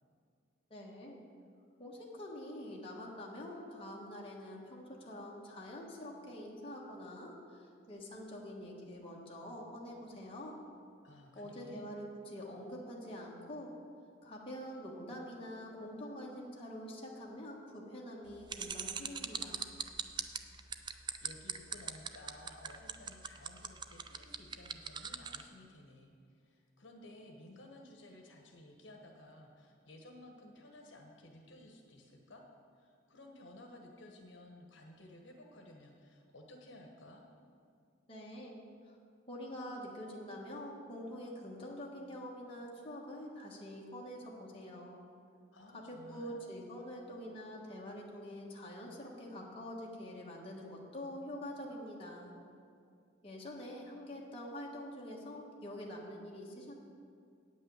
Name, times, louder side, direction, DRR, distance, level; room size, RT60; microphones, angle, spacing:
voice 1, 0.7-1.2 1.8-10.6 11.3-13.7 14.2-19.7 38.1-38.6 38.9-39.0 39.3-45.0 45.7-52.3 53.2-56.7, equal, 30° left, -3 dB, 1.4 m, -46 dB
voice 2, 11.0-11.8 20.5-20.6 21.2-32.4 32.8-37.2 45.5-46.4, left 1 dB, 70° left, 1 dB, 1.1 m, -55 dB
sound 1, 18.5-25.4, right 7 dB, 25° right, 0.3 m, -39 dB
9.3 x 5.4 x 7.9 m, 2.3 s
head